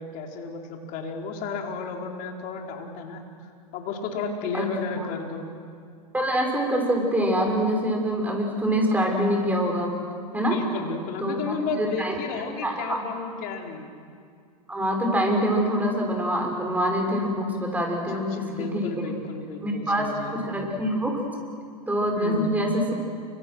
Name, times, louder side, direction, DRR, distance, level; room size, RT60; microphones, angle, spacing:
voice 1, 0.0-3.2 3.7-5.5 10.5-13.9 18.1-20.4 22.2-22.5, left 4 dB, 50° left, 2 dB, 4.3 m, -33 dB
voice 2, 6.1-9.9 10.3-10.6 11.2-12.1 12.6-13.0 14.7-18.9 19.6-21.2 21.9-22.9, equal, 10° right, 1 dB, 6.5 m, -25 dB
29.5 x 25.5 x 6.4 m, 2.2 s
hypercardioid pair, 105°, 19 cm